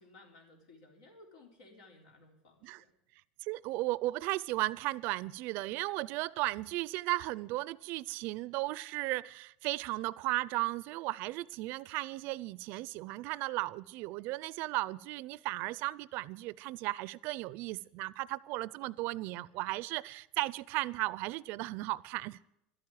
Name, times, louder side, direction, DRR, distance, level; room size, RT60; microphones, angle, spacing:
voice 1, 0.0-2.9, left 2 dB, 85° left, 3.6 m, -58 dB
voice 2, 3.4-22.4, right 19 dB, 60° right, 0.5 m, -35 dB
12.5 x 8.7 x 9.2 m
supercardioid pair, 115°, 4 cm